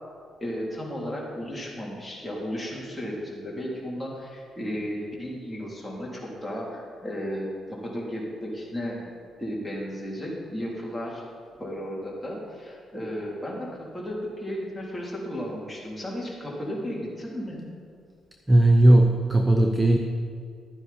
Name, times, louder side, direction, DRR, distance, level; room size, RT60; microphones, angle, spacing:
voice 1, 0.4-9.1 9.4-11.2 11.6-17.7, equal, 5° left, -5 dB, 3.2 m, -34 dB
voice 2, 18.5-20.0, right 1 dB, 15° right, 4 dB, 0.7 m, -17 dB
12.5 x 9.7 x 4.3 m, 2.2 s
cardioid pair, 90°, 0 cm